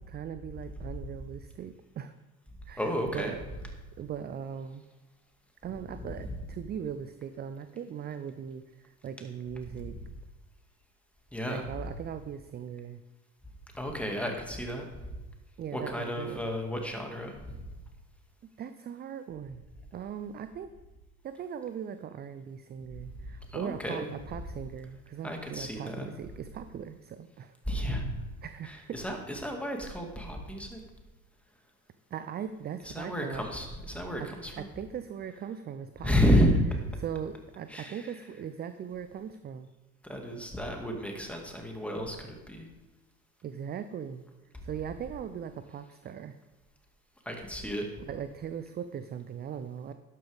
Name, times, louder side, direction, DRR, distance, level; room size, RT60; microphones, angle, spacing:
voice 1, 0.1-2.1 2.7-3.4 4.0-4.8 5.6-10.0 11.5-13.0 15.6-16.4 18.6-19.6 19.9-20.7 21.2-27.5 28.4-29.0 32.1-33.5 34.2-34.3 34.5-36.4 37.0-39.7 43.4-44.2 44.6-46.4 48.1-49.9, right 8 dB, 25° right, 11 dB, 0.5 m, -39 dB
voice 2, 2.8-3.3 6.0-6.4 9.7-9.8 11.3-11.7 13.7-15.2 15.7-17.6 23.5-24.1 25.2-26.1 27.7-28.2 28.6-30.8 32.8-34.7 36.0-36.6 37.7-38.1 40.0-42.7 44.5-44.6 47.3-47.9, equal, 5° left, 2 dB, 2.2 m, -31 dB
12.0 x 11.0 x 3.6 m, 1.1 s
figure-of-eight pair, 65°, 43 cm